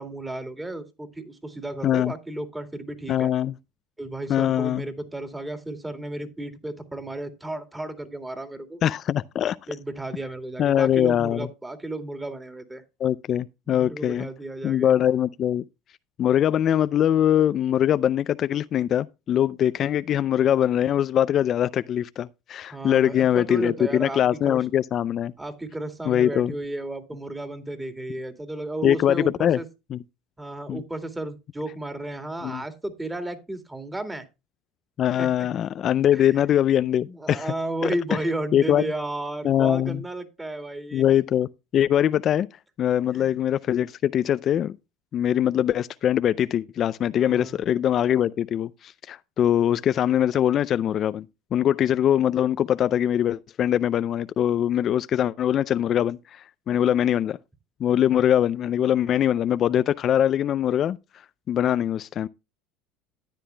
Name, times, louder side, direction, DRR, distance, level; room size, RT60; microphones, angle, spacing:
voice 1, 0.0-3.3 4.0-8.8 9.7-12.8 13.7-14.9 22.7-24.6 25.4-29.7 30.4-34.3 35.2-35.3 36.1-36.4 37.1-41.0 43.1-43.4 47.2-47.6, right 2 dB, 10° right, 2.3 m, -33 dB
voice 2, 1.8-2.1 3.1-3.5 4.3-4.9 8.8-9.6 10.6-11.5 13.0-14.3 14.6-15.6 16.2-25.3 26.1-26.5 28.8-29.6 29.9-30.0 30.7-30.8 32.4-32.6 35.0-37.5 38.5-38.8 39.4-40.0 40.9-41.5 41.7-42.5 42.8-44.8 45.1-51.3 51.5-57.4 57.8-61.0 61.5-62.3, left 10 dB, 45° left, 0.4 m, -22 dB
13.5 x 9.9 x 2.2 m
supercardioid pair, 90°, 0 cm